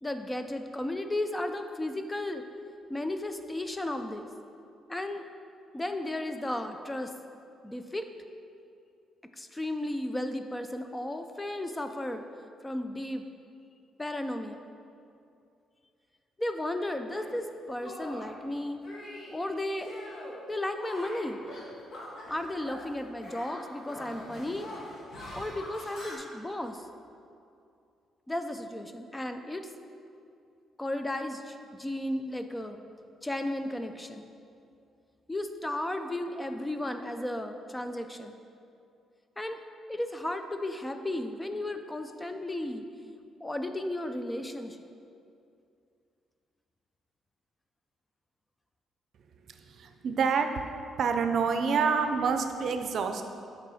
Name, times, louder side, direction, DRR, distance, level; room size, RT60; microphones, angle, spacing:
voice 1, 0.0-2.4 2.9-4.3 4.9-5.2 5.7-7.1 7.6-8.1 9.4-12.2 12.6-13.2 14.0-14.6 16.4-18.8 19.3-19.9 20.5-21.4 22.3-24.7 25.4-26.8 28.3-29.7 30.8-32.8 33.2-34.3 35.3-38.4 39.4-39.6 39.9-42.8 43.4-44.9, left 1 dB, 15° left, 7 dB, 0.4 m, -34 dB
Shatter, 17.1-17.3 17.8-18.4 18.8-19.4 19.8-20.4 20.7-22.9 23.2-26.2, left 1 dB, 60° left, 1.6 m, -43 dB
voice 2, 49.5-50.5 51.0-53.2, right 5 dB, 60° right, 6 dB, 0.5 m, -27 dB
7.1 x 5.5 x 4.2 m, 2.5 s
cardioid pair, 90°, 0 cm